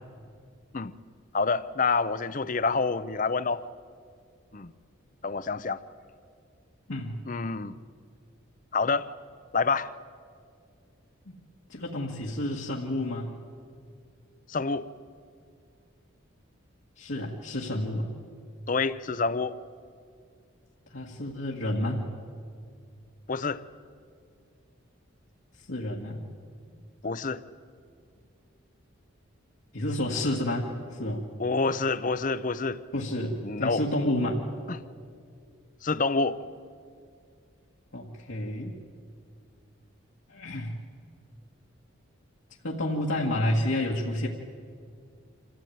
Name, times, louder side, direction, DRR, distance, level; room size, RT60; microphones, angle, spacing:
voice 1, 1.3-3.6 4.5-4.7 5.2-5.8 7.3-7.7 8.7-9.1 9.5-9.9 14.5-14.9 18.7-19.6 23.3-23.6 27.0-27.4 31.4-32.8 33.4-33.8 35.8-36.4, left 4 dB, 40° left, 0.6 m, -27 dB
voice 2, 11.7-13.3 17.0-18.1 20.9-22.0 25.6-26.3 26.7-26.8 29.7-31.3 32.9-34.4 37.9-38.8 40.3-40.7 42.6-44.3, left 1 dB, 70° left, 1.9 m, -30 dB
26.5 x 15.0 x 9.3 m
head